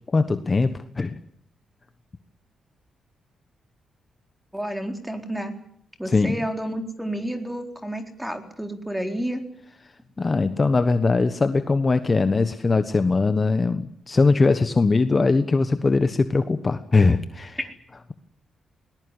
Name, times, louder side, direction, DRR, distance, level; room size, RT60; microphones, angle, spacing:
voice 1, 0.1-1.2 6.0-6.4 10.2-17.6, left 3 dB, 30° left, 10 dB, 1.3 m, -21 dB
voice 2, 4.5-5.5 6.0-9.4, right 1 dB, 5° right, 5 dB, 4.0 m, -30 dB
21.0 x 20.0 x 9.9 m, 0.68 s
cardioid pair, 110°, 0 cm